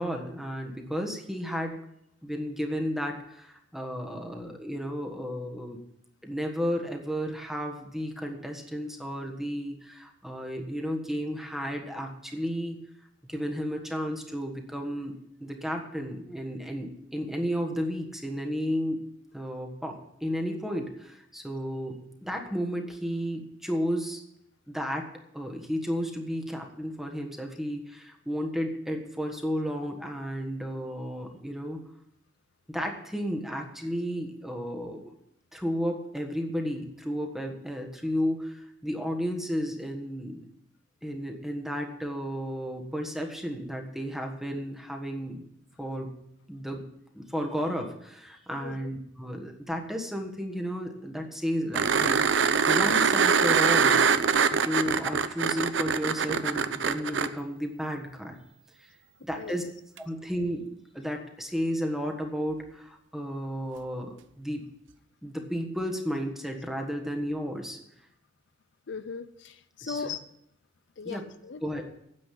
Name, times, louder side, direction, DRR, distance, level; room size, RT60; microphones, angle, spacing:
voice 1, 0.0-1.8 2.2-5.8 6.2-12.8 13.2-15.1 15.4-19.0 19.3-24.2 24.7-25.1 25.3-31.8 32.7-35.1 35.5-40.5 41.0-45.4 45.8-46.1 46.5-46.8 47.1-54.0 54.5-58.4 58.8-58.9 59.2-59.6 60.0-64.6 65.2-67.8 69.8-70.1 71.0-71.2 71.6-71.8, equal, ahead, 3 dB, 1.4 m, -33 dB
sound 1, 51.7-57.3 60.0-60.1, right 6 dB, 70° right, 0.7 m, -23 dB
voice 2, 59.3-59.7 68.9-70.2 71.0-71.6, left 5 dB, 65° left, 12 dB, 0.5 m, -38 dB
9.6 x 7.6 x 8.5 m, 0.79 s
head